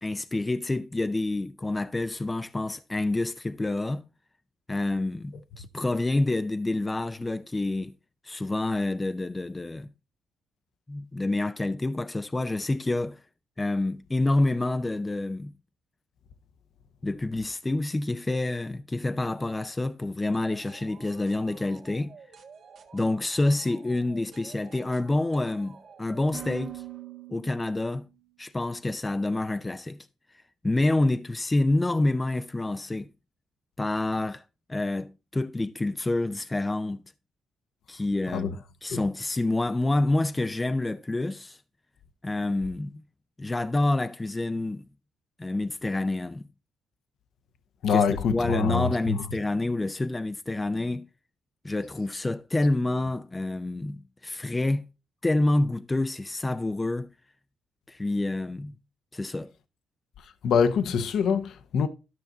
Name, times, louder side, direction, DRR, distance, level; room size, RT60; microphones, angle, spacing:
voice 1, 0.0-4.0 4.7-7.9 8.2-9.9 10.9-13.2 13.6-15.5 17.0-22.1 22.9-26.8 27.3-28.1 28.4-30.0 30.6-33.1 33.8-34.4 34.7-37.0 37.9-41.6 42.2-43.0 43.4-44.8 45.4-46.4 47.9-48.0 48.3-51.1 51.6-54.8 55.2-57.1 57.9-58.7 59.1-59.5, left 2 dB, 15° left, 0.5 m, -28 dB
sound 1, 20.3-28.1, right 9 dB, 60° right, 1.5 m, -47 dB
voice 2, 47.8-49.2 60.4-61.9, left 6 dB, 70° left, 0.9 m, -25 dB
12.5 x 5.8 x 3.9 m
cardioid pair, 90°, 0 cm